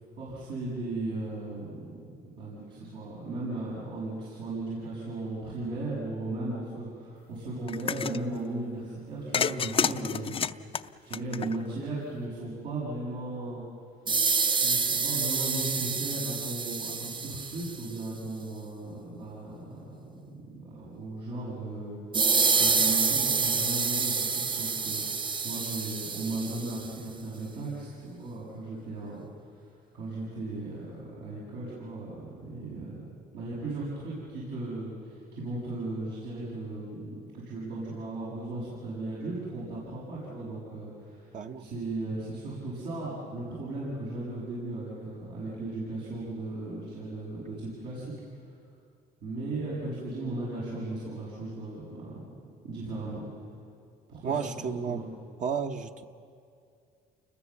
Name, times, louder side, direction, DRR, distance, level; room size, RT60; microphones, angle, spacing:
voice 1, 0.2-1.9 2.4-13.6 14.6-19.8 20.1-20.2 20.4-22.3 22.6-29.2 29.6-29.7 29.9-48.4 49.2-52.1 52.6-53.3 54.1-54.4 54.9-55.0, right 2 dB, 85° right, -7 dB, 7.1 m, -36 dB
sound 1, 7.7-8.2 9.3-11.8, left 7 dB, 35° left, 0.5 m, -29 dB
sound 2, 14.1-17.9 22.1-26.9, right 5 dB, 30° right, 0.7 m, -27 dB
voice 2, 41.3-41.7 54.2-55.0 55.4-56.0, right 6 dB, 50° right, 5 dB, 1.1 m, -32 dB
29.0 x 21.5 x 7.3 m, 2.4 s
cardioid pair, 110°, 17 cm